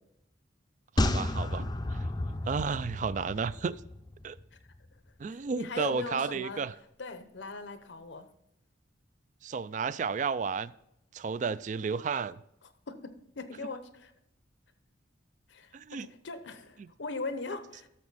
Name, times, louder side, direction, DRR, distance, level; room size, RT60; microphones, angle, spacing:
sound 1, 1.0-4.4 4.7-4.8, left 1 dB, 20° left, 0.5 m, -32 dB
voice 1, 1.0-2.0 2.3-3.8 4.2-4.4 5.2-6.7 9.4-10.7 11.1-12.4 15.7-16.1 16.8-16.9, right 5 dB, 40° right, 0.3 m, -32 dB
voice 2, 5.3-6.6 7.0-8.3 12.6-14.1 15.5-17.9, left 3 dB, 75° left, 0.9 m, -40 dB
12.5 x 7.0 x 4.1 m
head